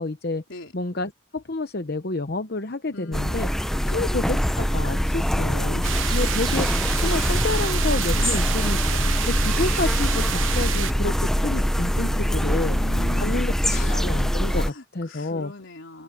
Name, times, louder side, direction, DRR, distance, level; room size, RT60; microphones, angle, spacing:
voice 1, 0.0-0.4 0.7-3.5 3.9-5.8 6.1-8.8 9.3-12.8 13.2-13.5 13.8-15.5, left 2 dB, 50° left, 0.9 m, -29 dB
voice 2, 2.9-3.5 3.8-4.0 8.1-8.7 12.0-14.0 14.4-16.0, left 2 dB, 70° left, 3.9 m, -39 dB
sound 1, 3.1-14.7, equal, ahead, 0.6 m, -23 dB
sound 2, 5.8-10.9, right 11 dB, 75° right, 1.0 m, -29 dB
head